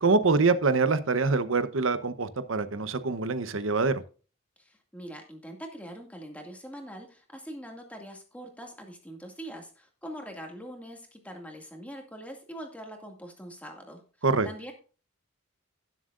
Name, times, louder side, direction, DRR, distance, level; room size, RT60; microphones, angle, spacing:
voice 1, 0.0-3.9 14.2-14.5, right 4 dB, 75° right, 12 dB, 0.9 m, -25 dB
voice 2, 4.6-14.0 14.4-14.7, equal, 5° left, 2 dB, 2.2 m, -43 dB
17.5 x 7.4 x 2.5 m, 0.37 s
head